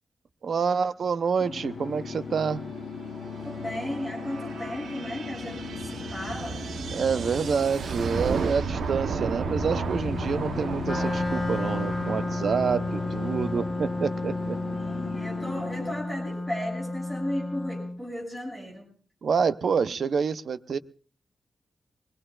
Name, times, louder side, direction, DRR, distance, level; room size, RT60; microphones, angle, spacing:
voice 1, 0.4-2.6 6.9-14.8 19.2-20.8, right 6 dB, 60° right, 12 dB, 0.7 m, -27 dB
sound 1, 1.4-15.9, left 5 dB, 70° left, 1.1 m, -37 dB
sound 2, 1.8-15.2, right 5 dB, 90° right, 0.9 m, -35 dB
voice 2, 3.4-6.6 14.7-18.9, left 1 dB, 5° right, -1 dB, 6.6 m, -35 dB
Wind instrument woodwind instrument, 10.8-18.0, left 2 dB, 15° left, 1.2 m, -32 dB
23.5 x 21.0 x 2.4 m, 0.43 s
wide cardioid pair, 150°, 0 cm